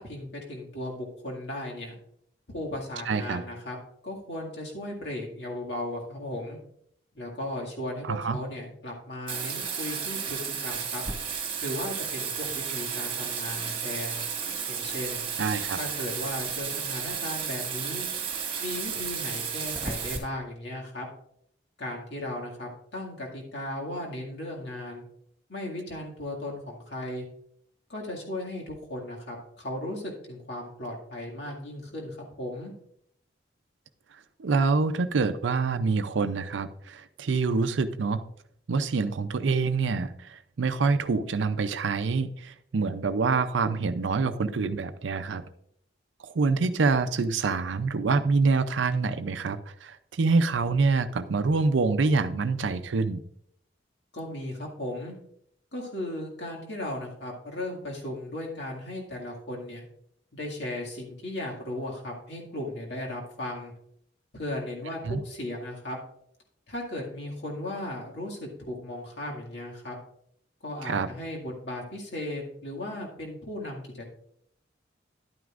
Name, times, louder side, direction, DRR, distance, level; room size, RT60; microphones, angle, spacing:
voice 1, 0.0-2.0 2.5-3.8 4.0-6.6 7.1-11.0 11.6-14.2 14.7-15.3 15.7-18.1 18.6-21.1 21.8-25.0 25.5-27.3 27.9-32.7 54.1-55.1 55.7-59.8 60.3-63.7 64.3-66.0 66.7-70.0 70.6-74.1, left 1 dB, 65° left, -1 dB, 2.1 m, -36 dB
voice 2, 3.1-3.4 8.0-8.4 15.4-15.8 34.4-38.2 38.7-45.4 46.2-53.2 65.0-65.2 70.8-71.1, right 4 dB, 80° right, 10 dB, 0.5 m, -26 dB
Bathtub (filling or washing), 9.3-20.2, right 7 dB, 30° right, 1.6 m, -33 dB
11.0 x 9.3 x 2.5 m, 0.71 s
head